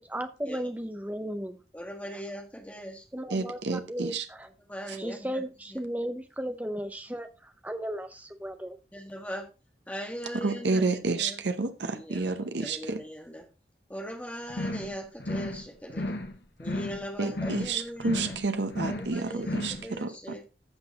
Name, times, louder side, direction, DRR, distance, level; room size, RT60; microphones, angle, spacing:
voice 1, 0.0-1.6 3.1-4.5 5.0-8.8, equal, 10° right, 0.7 m, -35 dB
voice 2, 1.7-3.1 4.7-5.4 5.7-5.8 8.9-9.5 9.9-11.4 11.9-13.5 13.9-16.2 16.6-18.3 18.9-20.4, equal, 10° left, 1.7 m, -40 dB
voice 3, 3.3-4.2 4.9-5.0 10.4-13.0 17.2-20.1, right 3 dB, 90° right, 0.8 m, -30 dB
sound 1, 14.5-14.9 15.2-15.6 15.9-16.3 16.6-17.0 17.3-17.7 18.0-18.4 18.7-19.1 19.4-19.8, left 1 dB, 70° left, 1.2 m, -33 dB
15.0 x 6.0 x 2.9 m
head